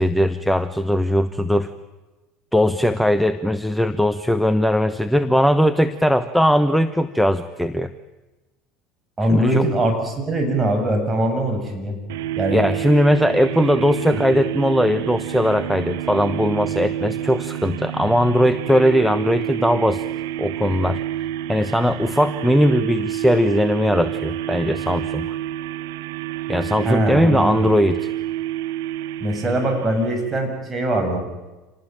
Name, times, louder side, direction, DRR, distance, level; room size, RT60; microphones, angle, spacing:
voice 1, 0.0-1.7 2.5-7.9 9.3-9.7 12.5-20.0 20.4-21.0 21.5-25.4 26.5-28.1, equal, ahead, 11 dB, 1.1 m, -19 dB
voice 2, 9.2-12.0 12.4-12.6 14.1-14.2 26.8-27.7 29.2-31.2, right 1 dB, 25° right, 4 dB, 7.5 m, -22 dB
sound 1, 12.1-30.4, right 13 dB, 75° right, 1.0 m, -28 dB
27.0 x 19.0 x 9.0 m, 1.2 s
hypercardioid pair, 75°, 0 cm